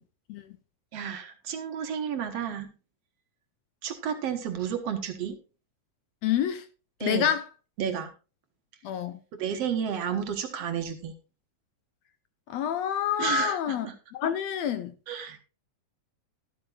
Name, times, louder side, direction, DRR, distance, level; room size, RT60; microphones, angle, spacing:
voice 1, 0.9-2.7 3.8-5.4 7.0-7.3 7.8-8.1 9.4-11.1 13.2-13.9 15.1-15.4, right 8 dB, 60° right, 2.2 m, -31 dB
voice 2, 6.2-6.7 7.0-7.4 8.8-9.2 12.5-13.9 14.1-14.9, left 9 dB, 75° left, 1.7 m, -28 dB
13.0 x 12.5 x 2.4 m
omnidirectional pair, 3.4 m